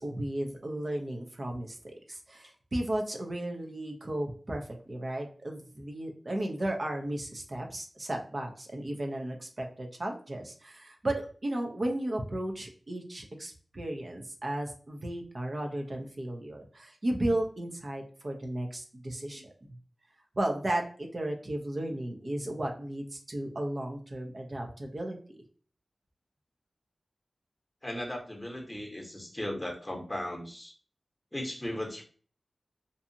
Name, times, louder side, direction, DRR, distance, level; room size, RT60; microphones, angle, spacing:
voice 1, 0.0-19.8 20.3-25.4, right 1 dB, 50° right, 2 dB, 0.6 m, -34 dB
voice 2, 27.8-30.7 31.3-32.0, left 1 dB, 20° left, 2 dB, 0.9 m, -37 dB
2.7 x 2.4 x 2.7 m, 0.42 s
cardioid pair, 40°, 0 cm